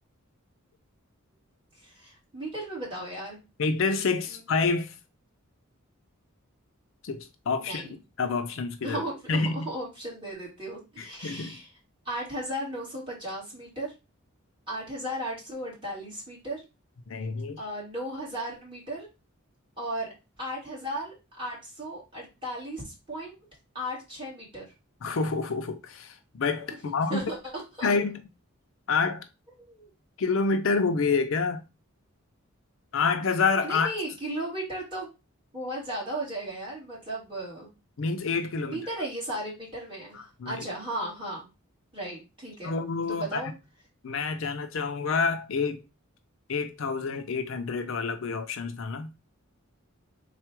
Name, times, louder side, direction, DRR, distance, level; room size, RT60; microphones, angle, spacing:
voice 1, 1.8-3.4 4.3-4.4 7.6-7.9 8.8-11.7 12.1-13.9 14.7-16.6 17.6-19.1 19.8-20.1 20.4-23.3 23.7-24.6 26.8-27.4 27.8-27.9 29.6-29.9 33.6-35.1 35.5-37.7 38.6-41.5 41.9-42.8 43.1-43.5, right 1 dB, 25° right, 2.1 m, -35 dB
voice 2, 3.6-5.0 7.0-9.0 9.3-9.7 11.0-11.6 17.1-17.6 25.0-27.2 27.8-28.2 28.9-29.3 30.2-31.6 32.9-33.9 38.0-38.8 40.1-40.7 42.6-43.4 44.0-45.8 46.5-49.1, left 4 dB, 60° left, 0.5 m, -28 dB
3.6 x 2.3 x 4.5 m
head